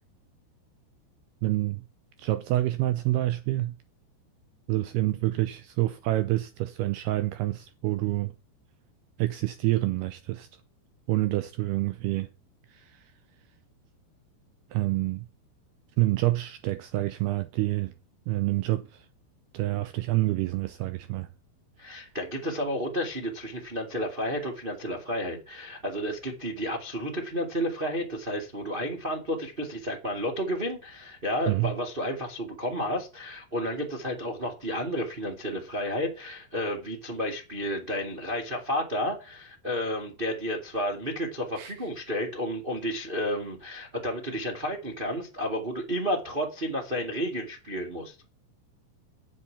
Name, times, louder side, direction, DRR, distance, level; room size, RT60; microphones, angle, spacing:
voice 1, 1.4-1.8 2.2-3.7 4.7-8.3 9.2-10.5 11.1-12.3 12.7-13.0 14.7-15.3 16.0-17.9 18.3-19.1 19.5-21.3 21.9-22.0 31.5-31.7 41.6-41.7, right 17 dB, 80° right, 2.3 m, -27 dB
voice 2, 21.8-48.1, equal, 35° right, 0.8 m, -31 dB
8.4 x 7.5 x 8.6 m
omnidirectional pair, 5.3 m